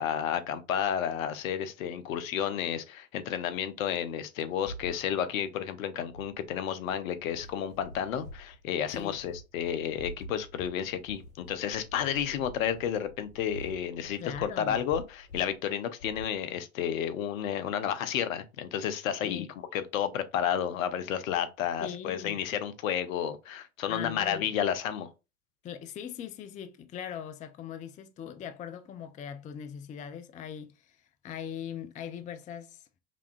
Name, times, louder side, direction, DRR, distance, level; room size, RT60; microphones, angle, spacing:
voice 1, 0.0-19.5 19.7-25.1, left 9 dB, 70° left, 0.8 m, -31 dB
sound 1, 4.7-5.0 6.1-6.5 6.9-15.5 16.0-16.3, right 1 dB, 55° left, 1.8 m, -46 dB
voice 2, 14.2-14.8 19.2-19.5 21.8-22.4 23.9-24.5 25.6-32.8, left 9 dB, 20° left, 0.4 m, -40 dB
4.9 x 3.4 x 2.3 m
figure-of-eight pair, 75°, 42 cm